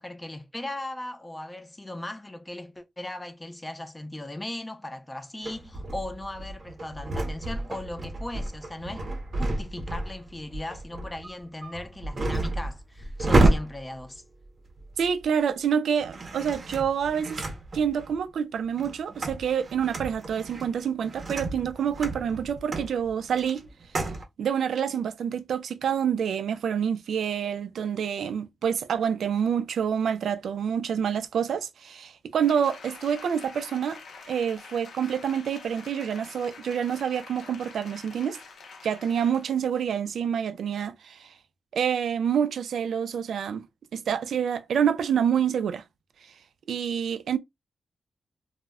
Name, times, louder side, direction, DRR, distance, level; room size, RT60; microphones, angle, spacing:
voice 1, 0.0-14.2, left 1 dB, 15° left, 0.4 m, -38 dB
sound 1, 5.4-15.2 16.0-18.2 18.6-24.2, right 2 dB, 40° right, 0.6 m, -30 dB
voice 2, 15.0-17.4 17.7-23.6 24.4-34.0 34.3-38.4 38.8-41.3 41.7-43.7 43.9-45.8 46.7-47.4, right 8 dB, 90° right, 0.3 m, -27 dB
Applause, 32.4-39.6 40.0-40.1, left 4 dB, 80° left, 0.5 m, -46 dB
2.1 x 2.0 x 3.4 m
wide cardioid pair, 145°, 0 cm